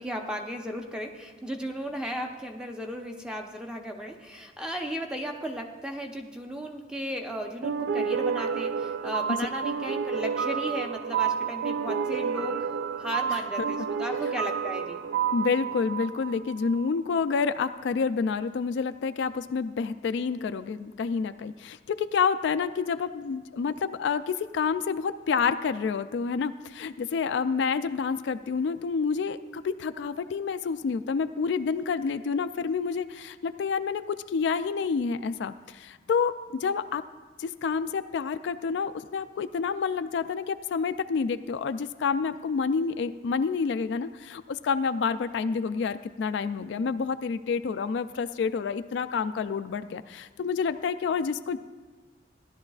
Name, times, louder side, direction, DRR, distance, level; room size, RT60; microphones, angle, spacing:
voice 1, 0.0-12.7 13.0-15.0, equal, 5° right, 2 dB, 0.7 m, -35 dB
sound 1, 7.6-16.9, right 6 dB, 65° right, 0.4 m, -30 dB
voice 2, 15.3-37.0 37.4-51.6, left 5 dB, 70° left, 11 dB, 0.3 m, -28 dB
16.0 x 11.0 x 2.4 m, 1.3 s
head